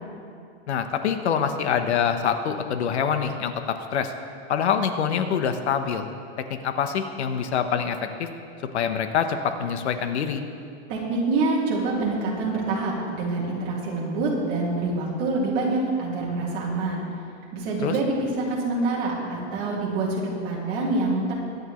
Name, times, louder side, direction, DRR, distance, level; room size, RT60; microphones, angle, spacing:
voice 1, 0.7-4.1 4.5-6.1 6.6-8.3 8.7-10.4 17.8-18.0, left 7 dB, 75° left, 8 dB, 1.1 m, -25 dB
voice 2, 10.9-17.0 17.5-21.3, right 3 dB, 25° right, -5 dB, 2.3 m, -26 dB
23.0 x 9.4 x 3.1 m, 2.5 s
supercardioid pair, 180°, 34 cm